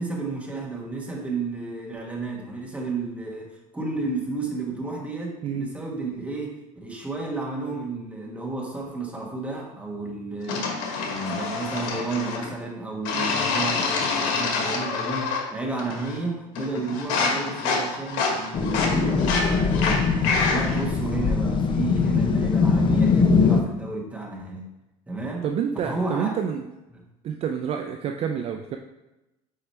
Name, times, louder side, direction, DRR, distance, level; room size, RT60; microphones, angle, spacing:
voice 1, 0.0-24.7 25.1-25.5 25.8-26.4 26.9-27.0, right 3 dB, 10° right, -1 dB, 1.3 m, -32 dB
sound 1, 10.5-12.5 13.1-15.5 15.8-16.2 16.6-20.8, left 4 dB, 75° left, 1.2 m, -27 dB
sound 2, 18.5-23.6, left 5 dB, 35° left, 0.6 m, -21 dB
voice 2, 25.4-26.7 27.2-28.8, right 8 dB, 40° right, 5 dB, 0.4 m, -28 dB
4.9 x 4.7 x 4.3 m, 0.99 s
supercardioid pair, 110°, 15 cm